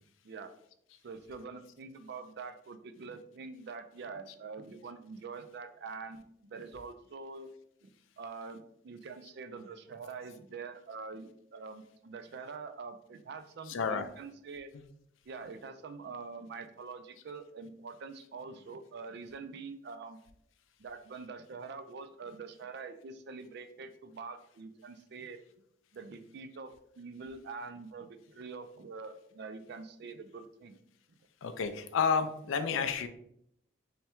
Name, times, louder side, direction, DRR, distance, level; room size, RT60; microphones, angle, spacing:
voice 1, 1.0-7.5 7.8-7.9 8.2-14.7 15.3-20.2 20.8-25.4 25.9-30.8, right 4 dB, 55° right, 9 dB, 0.4 m, -45 dB
voice 2, 13.7-14.1 31.4-33.1, left 6 dB, 80° left, 9 dB, 0.4 m, -30 dB
3.3 x 2.2 x 4.3 m, 0.71 s
head